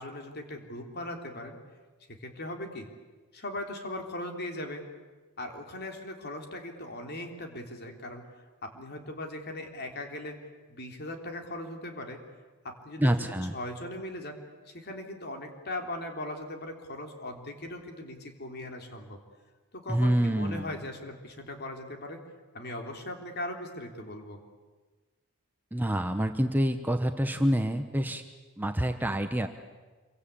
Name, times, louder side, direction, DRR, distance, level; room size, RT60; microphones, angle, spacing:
voice 1, 0.0-1.6 2.2-2.9 3.3-4.8 5.4-8.2 8.6-10.4 10.7-12.2 12.6-14.4 14.7-19.2 19.7-22.2 22.5-24.4, left 1 dB, 45° left, 4 dB, 3.5 m, -39 dB
voice 2, 13.0-13.5 19.9-20.7 25.7-28.2 28.6-29.5, right 1 dB, 10° right, 6 dB, 1.0 m, -27 dB
26.5 x 24.0 x 8.6 m, 1.3 s
head